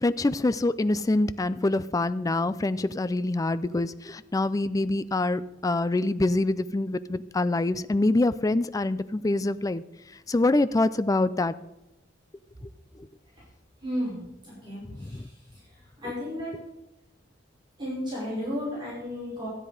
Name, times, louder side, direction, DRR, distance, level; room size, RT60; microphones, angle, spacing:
voice 1, 0.0-9.8 10.3-11.5 15.1-15.2, left 2 dB, 20° left, 14 dB, 0.4 m, -25 dB
voice 2, 13.8-15.2 16.0-16.5 17.8-19.5, equal, 25° right, -7 dB, 5.3 m, -33 dB
13.0 x 9.7 x 5.0 m, 0.94 s
head